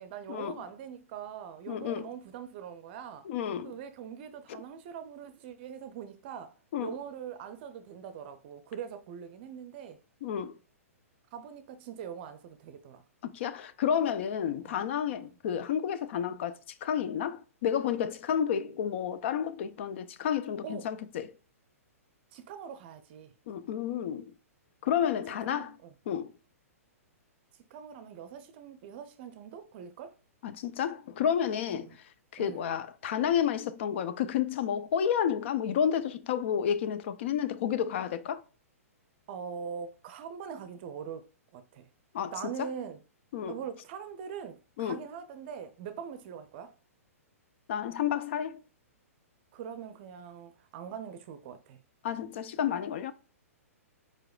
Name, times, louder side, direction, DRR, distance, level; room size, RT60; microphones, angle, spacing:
voice 1, 0.0-3.3 3.6-10.0 11.3-13.0 14.6-14.8 15.1-15.3 20.6-20.9 22.3-23.3 25.4-25.9 27.7-30.1 31.7-32.0 32.4-32.6 39.3-41.9 42.3-43.0 43.5-46.7 49.5-51.8, right 7 dB, 45° right, 0.5 m, -42 dB
voice 2, 1.7-2.1 3.3-3.7 6.7-6.9 10.2-10.5 13.2-21.4 23.5-24.3 24.8-25.8 26.1-26.3 30.4-31.9 32.3-38.4 42.1-42.3 42.6-42.7 43.3-43.6 44.8-45.0 47.7-48.6 52.0-53.1, left 8 dB, 50° left, 0.5 m, -30 dB
4.7 x 4.5 x 2.4 m
figure-of-eight pair, 115°, 8 cm